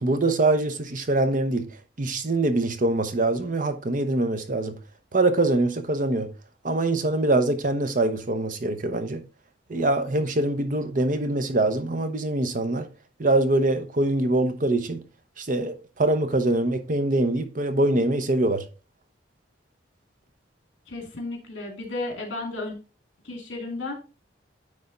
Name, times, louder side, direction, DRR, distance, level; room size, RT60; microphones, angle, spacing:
voice 1, 0.0-1.7 2.0-4.7 5.1-6.3 6.6-9.2 9.7-12.9 13.2-15.0 15.4-18.6, right 2 dB, 45° right, 0.8 m, -24 dB
voice 2, 20.9-22.8 23.2-23.9, left 2 dB, 70° left, 2.4 m, -33 dB
9.5 x 3.5 x 3.9 m
head